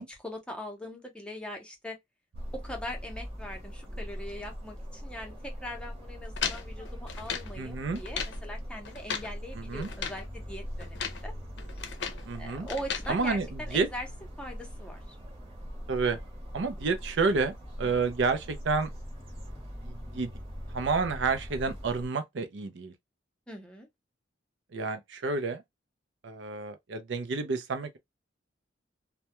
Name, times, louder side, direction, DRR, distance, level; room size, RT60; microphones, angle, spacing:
voice 1, 0.1-2.0 2.5-11.3 12.4-14.1 14.4-15.0 17.8-17.9 23.5-23.9, left 1 dB, 5° left, 0.6 m, -41 dB
sound 1, 2.3-22.1, equal, 35° right, 0.9 m, -41 dB
sound 2, 6.4-7.5 7.9-8.4 8.8-9.3 9.8-10.2 10.8-11.2 11.6-12.3 12.7-13.1, left 7 dB, 65° left, 0.5 m, -36 dB
voice 2, 7.6-8.0 9.5-9.9 12.3-12.7 13.1-13.9 15.9-16.2 16.5-18.9 19.8-20.3 20.7-22.9 24.7-25.6 26.2-28.0, right 4 dB, 70° right, 0.5 m, -30 dB
2.2 x 2.1 x 2.8 m
head